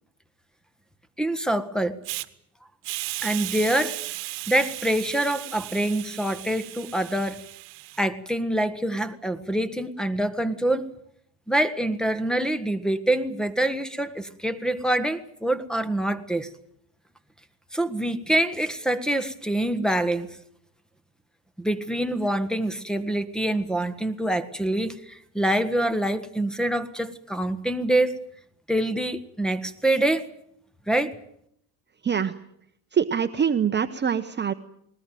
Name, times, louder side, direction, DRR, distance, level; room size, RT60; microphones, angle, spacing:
voice 1, 1.2-2.0 3.2-4.0 4.5-7.4 8.0-10.8 11.5-16.5 17.7-20.3 21.6-28.1 28.7-30.3 30.9-31.1, right 1 dB, ahead, 12 dB, 1.5 m, -25 dB
Hiss, 2.0-2.3 2.8-8.0, right 22 dB, 75° right, 1.2 m, -35 dB
voice 2, 32.9-34.5, right 7 dB, 25° right, 8 dB, 1.0 m, -24 dB
20.5 x 19.5 x 9.2 m, 0.74 s
supercardioid pair, 105°, 42 cm